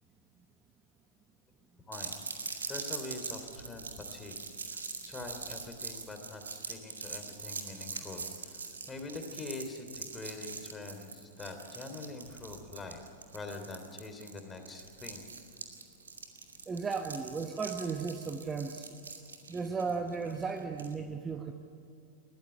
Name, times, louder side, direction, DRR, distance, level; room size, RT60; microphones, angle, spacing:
sound 1, 1.9-20.9, right 4 dB, 75° right, 2.1 m, -43 dB
voice 1, 2.7-4.4 4.7-13.0 13.3-15.2, left 3 dB, 15° left, 5 dB, 3.1 m, -44 dB
voice 2, 16.7-18.9 19.5-21.5, right 5 dB, 20° right, 6 dB, 1.0 m, -35 dB
21.0 x 14.0 x 9.9 m, 2.5 s
figure-of-eight pair, 95°, 0 cm